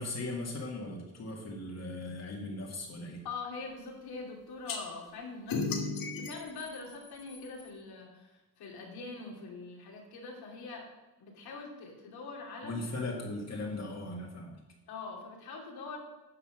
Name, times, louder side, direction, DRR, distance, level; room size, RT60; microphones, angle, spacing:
voice 1, 0.0-3.2 12.6-14.6, left 2 dB, 45° left, 0 dB, 1.9 m, -38 dB
voice 2, 3.2-10.9 11.2-12.7 14.9-16.0, left 4 dB, 85° left, 0 dB, 2.8 m, -43 dB
sound 1, 4.7-4.8 5.5-7.7, left 4 dB, 65° left, 1.7 m, -36 dB
10.0 x 5.9 x 6.3 m, 1.1 s
cardioid pair, 130°, 37 cm